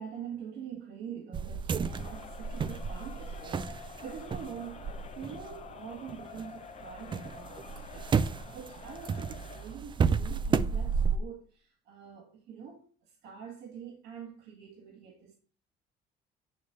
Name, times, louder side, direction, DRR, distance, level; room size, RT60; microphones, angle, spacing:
voice 1, 0.0-15.4, right 7 dB, 85° right, 1.8 m, -45 dB
sound 1, 1.3-6.5 6.8-11.2, right 6 dB, 30° right, 0.4 m, -32 dB
Crowd, 1.8-9.8, left 7 dB, 40° left, 0.7 m, -48 dB
9.3 x 3.2 x 6.6 m
cardioid pair, 110°, 17 cm